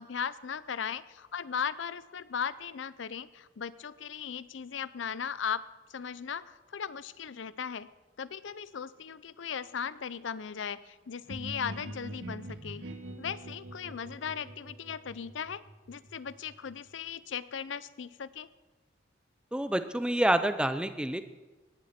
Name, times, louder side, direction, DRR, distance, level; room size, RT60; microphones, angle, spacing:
voice 1, 0.0-5.6 5.9-7.9 8.2-12.8 13.2-18.5, left 7 dB, 80° left, 17 dB, 0.5 m, -37 dB
sound 1, 11.3-16.9, right 1 dB, 85° right, 1.7 m, -44 dB
voice 2, 19.5-21.2, right 1 dB, 5° right, 10 dB, 0.6 m, -27 dB
18.0 x 10.5 x 4.3 m, 1.2 s
head